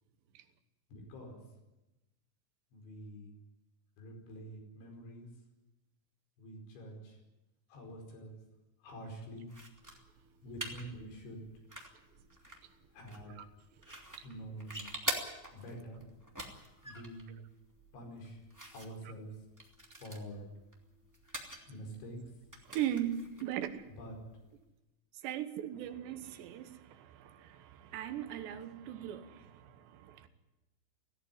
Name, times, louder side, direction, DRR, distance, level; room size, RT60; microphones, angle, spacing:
voice 1, 0.9-1.4 2.7-3.3 4.0-5.3 6.4-7.2 7.7-8.3 8.8-9.5 10.4-11.4 12.9-13.3 14.2-14.9 15.5-16.0 16.8-17.4 17.9-18.4 18.7-19.3 20.0-20.5 21.7-22.2 24.0-24.1, right 1 dB, 70° left, 7.2 m, -46 dB
sound 1, 9.5-24.6, right 1 dB, 10° right, 1.1 m, -46 dB
voice 2, 22.7-23.8 25.2-30.3, right 11 dB, 70° right, 3.2 m, -39 dB
18.0 x 16.5 x 9.9 m
omnidirectional pair, 5.6 m